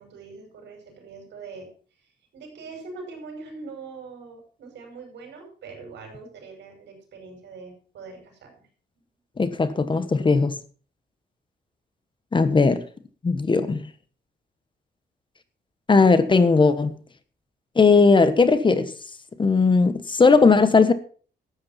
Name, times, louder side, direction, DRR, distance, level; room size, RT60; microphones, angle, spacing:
voice 1, 0.0-1.7 2.3-8.7, right 4 dB, 90° right, 5.6 m, -42 dB
voice 2, 9.4-10.6 12.3-12.8 13.2-13.9 15.9-17.0 17.8-18.9 19.4-20.9, left 4 dB, 25° left, 1.2 m, -18 dB
13.0 x 8.8 x 5.7 m
cardioid pair, 125°, 18 cm